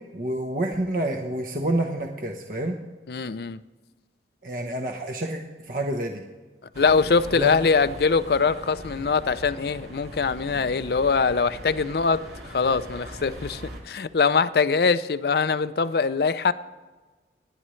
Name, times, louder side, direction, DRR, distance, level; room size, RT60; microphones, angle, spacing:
voice 1, 0.1-2.8 4.4-6.2 7.3-7.5, right 1 dB, 50° right, 3 dB, 1.0 m, -28 dB
voice 2, 3.1-3.6 6.8-12.2 12.5-13.6 13.9-16.5, left 5 dB, 60° left, 14 dB, 0.5 m, -22 dB
sound 1, 6.7-13.8, equal, 65° right, 2.9 m, -41 dB
27.5 x 10.0 x 3.2 m, 1.3 s
head